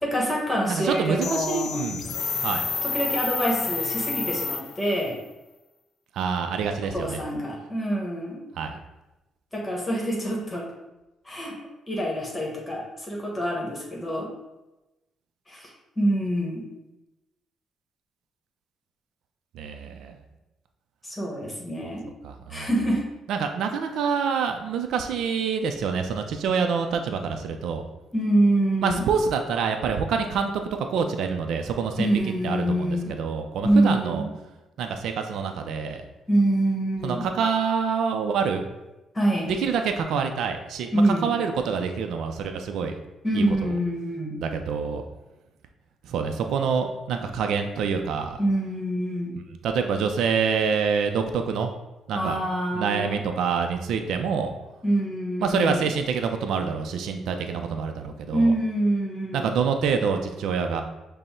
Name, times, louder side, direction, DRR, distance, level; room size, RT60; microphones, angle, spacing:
voice 1, 0.0-1.8 2.8-5.2 6.9-8.4 9.5-10.7 11.2-11.6 11.9-14.3 15.5-16.6 21.0-22.0 22.5-23.0 28.1-29.1 32.0-33.1 33.6-34.3 36.3-37.2 39.1-39.5 40.9-41.3 43.2-44.4 48.4-49.4 52.1-53.2 54.8-55.9 58.3-59.5, right 1 dB, 20° left, -2 dB, 1.1 m, -25 dB
voice 2, 0.7-2.0 2.4-2.6 6.1-7.2 8.6-8.8 19.5-20.2 22.2-22.7 23.3-27.8 28.8-32.1 32.4-34.2 34.8-36.0 37.0-38.6 39.5-42.9 43.3-43.7 44.4-45.0 46.0-48.4 49.6-51.7 52.1-52.4 52.7-54.5 55.4-58.5 59.3-60.8, right 6 dB, 80° right, 5 dB, 0.4 m, -26 dB
sound 1, 1.2-5.1, left 6 dB, 65° left, 0.4 m, -29 dB
5.3 x 2.0 x 4.3 m, 1.0 s
cardioid pair, 90°, 0 cm